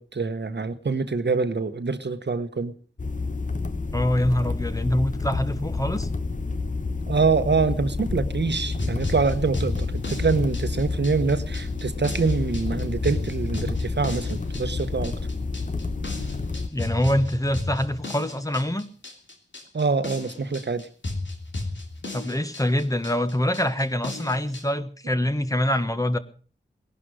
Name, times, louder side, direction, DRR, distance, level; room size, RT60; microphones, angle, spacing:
voice 1, 0.0-2.7 7.1-15.1 19.7-20.9, right 4 dB, 70° right, 1.3 m, -25 dB
sound 1, 3.0-16.7, left 3 dB, 45° left, 1.3 m, -29 dB
voice 2, 3.9-6.1 16.7-18.9 22.1-26.2, left 1 dB, 20° left, 1.4 m, -25 dB
sound 2, 8.5-24.6, left 2 dB, 85° left, 3.2 m, -34 dB
19.0 x 11.5 x 6.4 m
wide cardioid pair, 70°, 19 cm